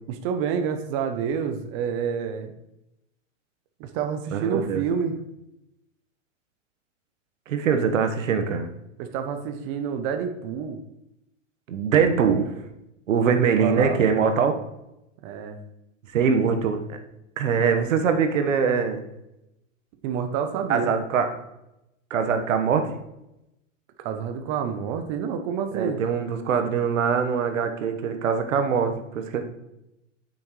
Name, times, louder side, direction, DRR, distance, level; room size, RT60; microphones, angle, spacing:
voice 1, 0.1-2.5 3.8-5.2 9.0-10.8 13.2-14.0 15.2-15.6 20.0-20.9 24.0-26.0, right 7 dB, 25° right, 7 dB, 0.5 m, -28 dB
voice 2, 4.3-4.8 7.5-8.7 11.7-12.6 13.1-14.6 16.1-17.0 17.4-19.0 20.7-21.3 22.1-22.9 25.7-29.4, right 6 dB, 85° right, 6 dB, 1.2 m, -23 dB
8.5 x 6.3 x 3.1 m, 0.87 s
supercardioid pair, 150°, 38 cm